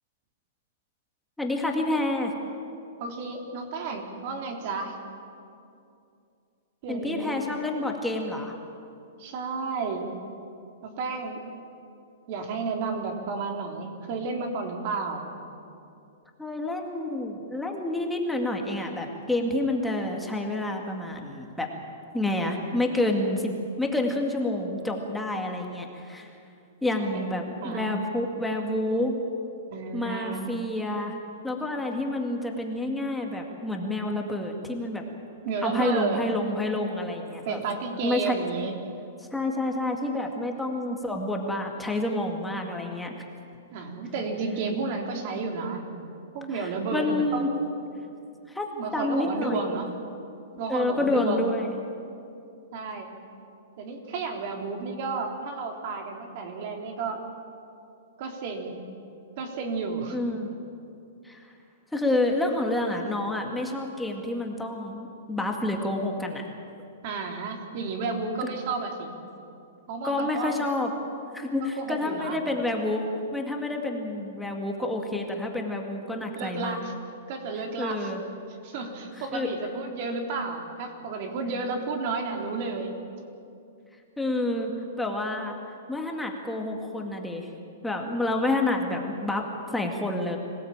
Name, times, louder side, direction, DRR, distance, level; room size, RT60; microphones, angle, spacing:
voice 1, 1.4-2.3 6.9-8.5 16.4-21.7 22.1-23.5 23.8-26.3 26.8-29.1 29.9-31.2 31.4-35.0 35.6-37.6 38.0-38.4 39.2-43.1 46.5-47.5 48.5-49.6 50.7-51.7 60.1-60.5 61.2-61.5 61.9-66.4 70.0-70.9 71.3-73.0 73.3-76.8 77.8-78.2 79.3-79.5 84.2-84.7 85.0-85.5 85.9-87.5 87.8-89.4 89.7-90.4, left 2 dB, 5° left, 1 dB, 2.1 m, -28 dB
voice 2, 3.0-5.0 6.8-7.4 9.2-10.1 10.8-11.4 12.3-15.3 27.1-27.3 27.6-28.0 29.7-30.4 35.4-36.2 37.5-38.7 43.7-45.8 46.3-47.5 48.7-49.9 50.6-51.5 52.7-53.1 53.8-57.2 58.2-58.8 59.4-60.2 67.0-69.1 69.9-70.6 71.8-72.4 76.4-76.9 77.3-78.1 78.6-83.0, right 4 dB, 45° right, 3 dB, 3.5 m, -32 dB
26.0 x 17.5 x 8.9 m, 2.6 s
hypercardioid pair, 160°, 0 cm